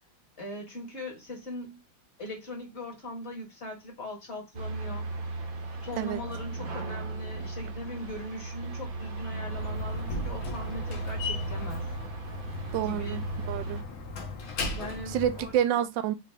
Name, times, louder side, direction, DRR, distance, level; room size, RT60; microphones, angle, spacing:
voice 1, 0.4-1.8 2.2-5.0 5.8-11.8 12.8-13.2 14.7-15.9, left 1 dB, 35° left, 1.7 m, -40 dB
sound 1, 4.5-13.8, right 2 dB, 55° right, 1.2 m, -36 dB
Slam, 9.4-15.6, left 3 dB, 90° left, 1.9 m, -37 dB
voice 2, 12.7-13.8 15.1-16.1, right 10 dB, 75° right, 1.2 m, -28 dB
5.8 x 2.7 x 3.4 m
omnidirectional pair, 2.1 m